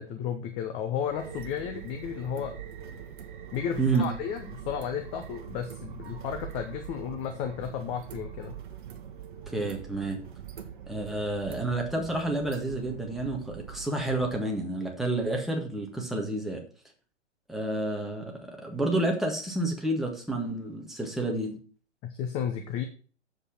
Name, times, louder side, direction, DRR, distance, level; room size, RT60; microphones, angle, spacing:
voice 1, 0.0-2.5 3.5-8.6 22.0-22.8, left 8 dB, 15° left, 6 dB, 0.7 m, -33 dB
sound 1, 1.0-14.4, right 8 dB, 45° right, 1.4 m, -43 dB
voice 2, 3.8-4.1 9.5-10.2 10.9-16.6 17.5-21.6, right 2 dB, ahead, 0 dB, 1.7 m, -29 dB
8.1 x 7.5 x 5.9 m, 0.39 s
figure-of-eight pair, 120°, 36 cm